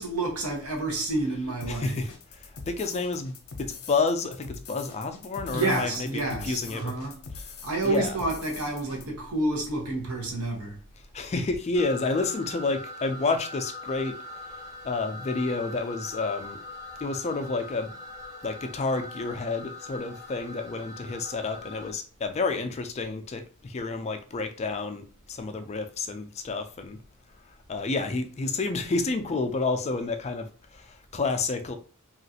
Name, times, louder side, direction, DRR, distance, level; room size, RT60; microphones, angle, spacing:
voice 1, 0.0-2.1 5.5-7.3 7.6-10.8, right 2 dB, 75° right, 0.9 m, -29 dB
sound 1, 1.6-9.1, left 4 dB, 70° left, 0.6 m, -43 dB
voice 2, 1.7-3.3 3.6-6.1 6.4-6.9 7.8-8.2 11.1-16.6 17.0-17.9 18.4-27.0 27.5-31.7, left 3 dB, 30° left, 0.3 m, -30 dB
sound 2, 11.7-21.9, left 2 dB, 15° right, 0.7 m, -42 dB
3.0 x 2.4 x 2.8 m
head